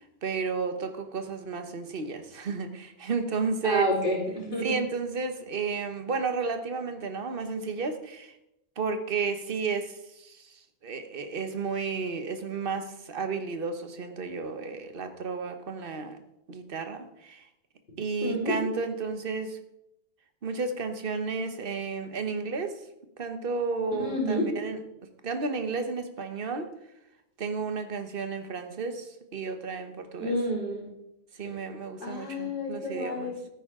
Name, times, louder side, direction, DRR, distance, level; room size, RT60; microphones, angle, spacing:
voice 1, 0.2-3.9 4.6-8.3 8.8-16.2 16.5-17.4 18.0-19.6 20.4-22.8 23.2-24.8 25.2-26.7 27.4-30.4 31.4-33.3, right 4 dB, 55° right, 8 dB, 1.3 m, -32 dB
voice 2, 3.6-4.8 18.2-18.5 24.0-24.5 30.2-30.8 32.0-33.4, equal, 45° left, -6 dB, 4.4 m, -29 dB
13.5 x 10.0 x 3.7 m, 0.84 s
omnidirectional pair, 1.2 m